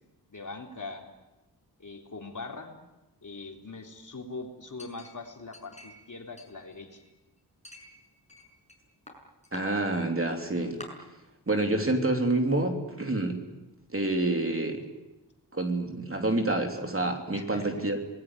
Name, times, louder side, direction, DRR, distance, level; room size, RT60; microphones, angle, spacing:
voice 1, 0.3-1.1 1.8-2.7 3.2-7.0 17.3-17.7, left 3 dB, 50° left, 2 dB, 3.7 m, -41 dB
Chink clink, 4.8-6.1 6.4-7.2 7.6-8.8 9.1-9.6 10.3-10.4 10.8-10.9, left 2 dB, 15° left, 6.4 m, -48 dB
voice 2, 9.5-10.8 11.5-13.4 13.9-14.8 15.5-18.0, right 2 dB, 35° right, 4 dB, 3.3 m, -28 dB
27.0 x 20.0 x 9.8 m, 1.0 s
wide cardioid pair, 100°, 40 cm